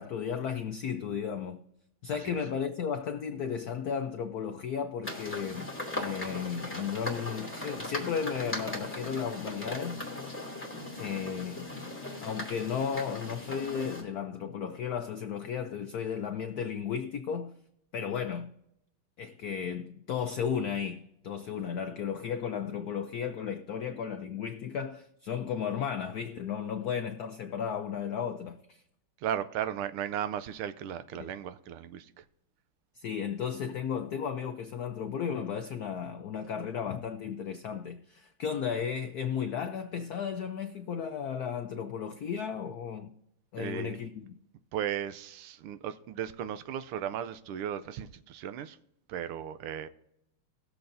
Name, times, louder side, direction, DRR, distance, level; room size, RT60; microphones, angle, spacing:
voice 1, 0.0-1.6 2.0-5.7 5.9-10.0 11.0-11.7 12.2-17.5 17.9-18.5 19.2-28.8 31.2-31.3 32.9-43.1 43.5-44.3, left 7 dB, 85° left, 0.8 m, -34 dB
sound 1, 5.0-14.0, left 1 dB, 5° left, 2.2 m, -38 dB
voice 2, 29.2-32.2 43.6-44.0 44.7-48.8 49.1-49.9, right 9 dB, 85° right, 1.6 m, -36 dB
20.0 x 7.0 x 2.6 m
omnidirectional pair, 2.4 m